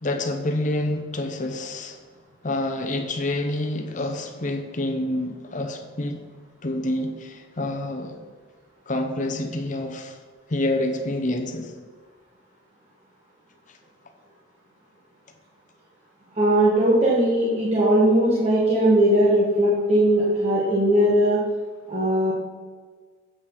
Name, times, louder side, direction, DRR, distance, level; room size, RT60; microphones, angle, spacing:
voice 1, 0.0-2.0 2.4-6.2 6.6-8.2 8.9-10.2 10.5-11.7, left 1 dB, 40° left, 4 dB, 0.8 m, -27 dB
voice 2, 16.3-21.4 21.9-22.3, right 1 dB, 30° right, -6 dB, 1.6 m, -19 dB
10.0 x 8.0 x 3.9 m, 1.5 s
head